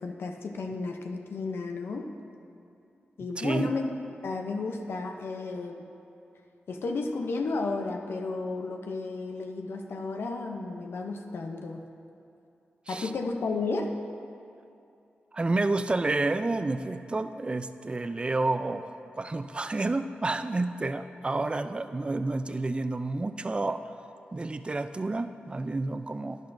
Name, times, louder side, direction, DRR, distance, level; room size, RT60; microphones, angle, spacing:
voice 1, 0.0-2.1 3.2-3.9 4.2-5.8 6.7-11.8 12.9-13.9, left 3 dB, 75° left, 3 dB, 0.6 m, -33 dB
voice 2, 3.4-3.7 12.9-13.1 15.3-18.9 19.1-23.9 24.3-26.4, right 2 dB, 25° right, 10 dB, 0.4 m, -29 dB
11.5 x 10.5 x 2.6 m, 2.7 s
cardioid pair, 75°, 4 cm